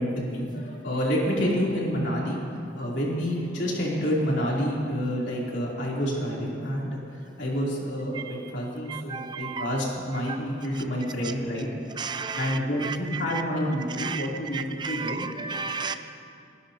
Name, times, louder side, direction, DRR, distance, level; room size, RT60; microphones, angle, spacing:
voice 1, 0.0-2.4 2.8-11.7 12.3-15.2, equal, 85° left, -4 dB, 3.2 m, -28 dB
voice 2, 8.9-9.8 10.7-10.8 12.0-13.4 14.0-14.3 14.5-16.0, right 5 dB, 25° right, 9 dB, 0.5 m, -33 dB
30.0 x 11.0 x 2.9 m, 2.5 s
head